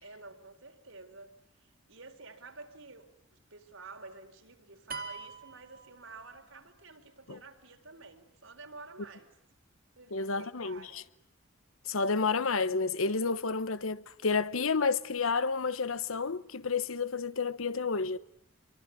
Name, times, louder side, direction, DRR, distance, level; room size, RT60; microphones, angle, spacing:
voice 1, 0.0-9.4 10.0-11.1, right 3 dB, 75° right, 4.3 m, -50 dB
sound 1, 4.9-6.6, right 4 dB, 45° right, 2.1 m, -43 dB
voice 2, 10.1-11.0 11.9-18.2, left 4 dB, 90° left, 1.1 m, -30 dB
26.0 x 23.5 x 9.4 m
head